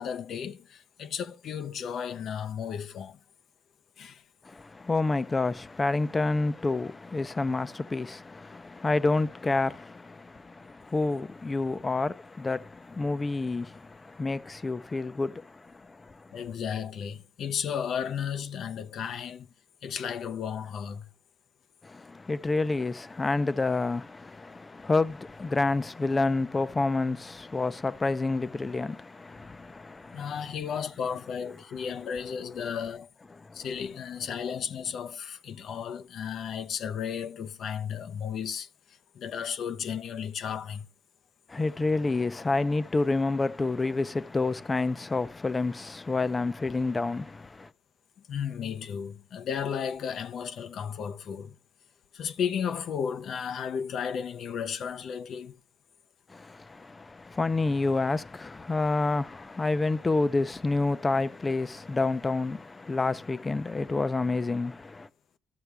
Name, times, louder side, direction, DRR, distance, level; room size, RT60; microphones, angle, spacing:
voice 1, 0.0-3.2 4.0-4.2 16.3-19.5 19.8-21.1 30.1-40.9 48.3-51.5 52.1-55.6, left 7 dB, 65° left, 0.6 m, -34 dB
voice 2, 4.4-16.4 21.8-30.3 33.4-33.7 41.5-47.7 56.3-65.1, left 3 dB, 25° left, 0.5 m, -29 dB
12.5 x 7.0 x 3.4 m
cardioid pair, 90°, 0 cm